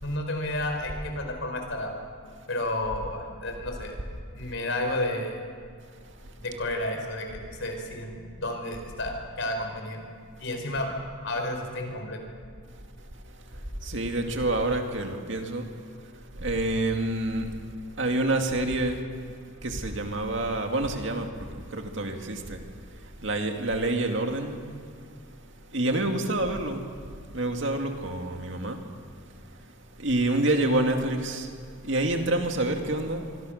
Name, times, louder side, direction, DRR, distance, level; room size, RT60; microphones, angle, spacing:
voice 1, 0.0-2.0 2.5-4.0 4.3-5.4 6.4-10.0 10.4-10.9 11.2-12.2, left 1 dB, 65° left, 4 dB, 4.6 m, -31 dB
voice 2, 13.5-15.8 16.4-17.6 18.0-19.1 19.6-22.6 23.0-24.6 25.7-26.9 27.3-28.9 30.0-31.5 31.8-33.3, right 2 dB, 60° right, 4 dB, 2.3 m, -27 dB
25.5 x 23.5 x 6.6 m, 2.2 s
head